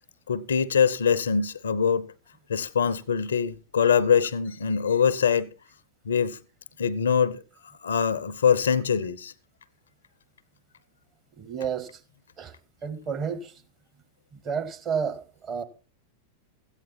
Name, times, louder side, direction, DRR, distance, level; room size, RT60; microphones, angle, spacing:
voice 1, 0.3-2.1 2.5-5.5 6.1-6.4 6.8-7.4 7.8-9.3, left 7 dB, 70° left, 0.6 m, -23 dB
voice 2, 11.4-12.0 12.4-12.6 12.8-13.5 14.3-15.6, right 6 dB, 30° right, 1.6 m, -31 dB
14.0 x 9.1 x 4.3 m
figure-of-eight pair, 90°, 0 cm